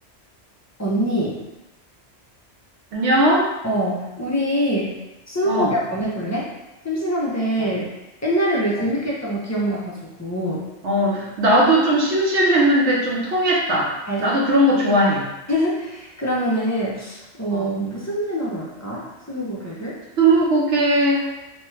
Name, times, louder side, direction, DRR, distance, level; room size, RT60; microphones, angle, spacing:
voice 1, 0.8-1.4 3.6-5.0 5.3-6.5 6.8-7.9 8.2-10.6 14.1-14.4 15.5-20.0, equal, 25° left, -6 dB, 0.4 m, -24 dB
voice 2, 2.9-3.5 5.4-5.7 7.6-7.7 10.8-13.9 14.2-15.3 17.5-17.6 20.2-21.3, right 1 dB, 75° right, -4 dB, 1.0 m, -18 dB
3.0 x 2.2 x 3.1 m, 1.0 s
omnidirectional pair, 1.2 m